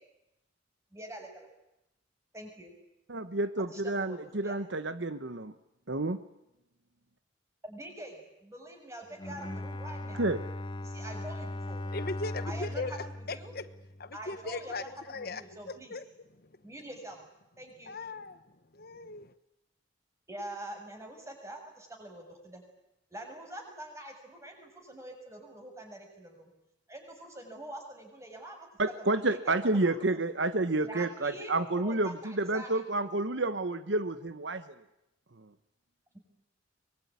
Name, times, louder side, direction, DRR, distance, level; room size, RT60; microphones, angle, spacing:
voice 1, 0.9-1.5 2.3-2.7 3.7-4.6 7.6-10.3 10.8-11.8 12.4-13.5 14.1-16.0 16.6-17.2 17.6-18.0 20.3-22.6 23.1-26.5 26.9-29.2 29.6-30.2 30.8-32.8, right 1 dB, 15° right, 3 dB, 6.9 m, -45 dB
voice 2, 3.1-5.5 5.9-6.2 10.2-10.4 28.8-34.6 35.4-35.5, right 2 dB, 65° right, 11 dB, 1.2 m, -30 dB
Bowed string instrument, 9.1-14.4, left 1 dB, 25° left, 0.9 m, -39 dB
voice 3, 11.9-13.6 14.0-15.4 15.9-16.0 17.9-18.4 18.7-19.3, left 3 dB, 50° left, 12 dB, 1.2 m, -38 dB
24.0 x 22.0 x 9.7 m, 0.88 s
head